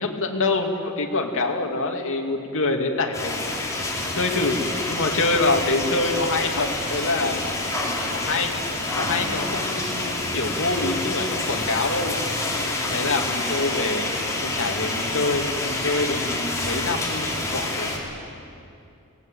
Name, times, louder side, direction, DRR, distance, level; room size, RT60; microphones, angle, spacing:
voice 1, 0.0-3.3 4.1-7.4 8.1-8.5 8.9-12.2 12.6-14.1 14.4-17.9, left 3 dB, 60° left, 2 dB, 2.5 m, -25 dB
sound 1, 3.1-18.0, left 2 dB, 15° left, 3.8 m, -27 dB
24.0 x 18.0 x 9.2 m, 2.6 s
head